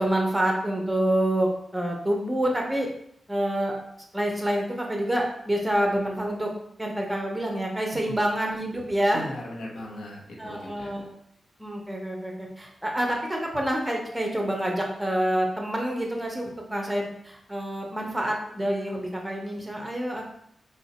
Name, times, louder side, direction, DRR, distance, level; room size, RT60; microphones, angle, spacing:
voice 1, 0.0-2.9 3.3-3.7 4.1-6.5 6.8-9.2 10.4-11.1 11.6-20.2, right 1 dB, 5° right, 0 dB, 0.6 m, -27 dB
voice 2, 9.1-10.9 20.2-20.3, left 1 dB, 75° left, -2 dB, 0.7 m, -38 dB
3.8 x 2.1 x 4.0 m, 0.73 s
wide cardioid pair, 165°, 0 cm